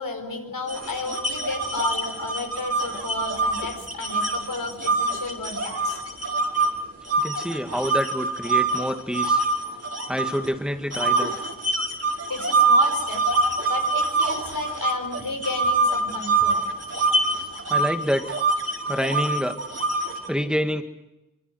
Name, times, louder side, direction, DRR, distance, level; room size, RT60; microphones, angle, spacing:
voice 1, 0.0-6.1 9.6-10.0 12.3-13.3 13.7-16.6 18.8-18.9, left 3 dB, 85° left, 5 dB, 4.8 m, -33 dB
sound 1, 0.7-6.7 7.1-10.5 10.9-20.3, right 3 dB, 45° right, 4.8 m, -24 dB
voice 2, 7.2-9.4 10.1-11.3 17.7-18.4 18.9-19.6 20.3-20.8, equal, ahead, 6 dB, 2.1 m, -27 dB
24.5 x 24.5 x 7.9 m, 0.98 s
wide cardioid pair, 60°, 33 cm